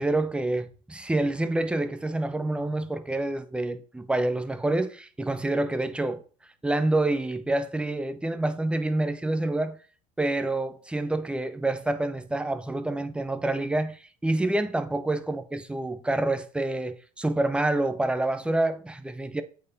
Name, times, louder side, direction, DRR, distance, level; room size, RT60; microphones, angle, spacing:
voice 1, 0.0-6.2 6.6-9.8 10.2-19.4, right 2 dB, 5° right, 0.6 m, -27 dB
8.3 x 4.3 x 2.7 m
supercardioid pair, 90°, 18 cm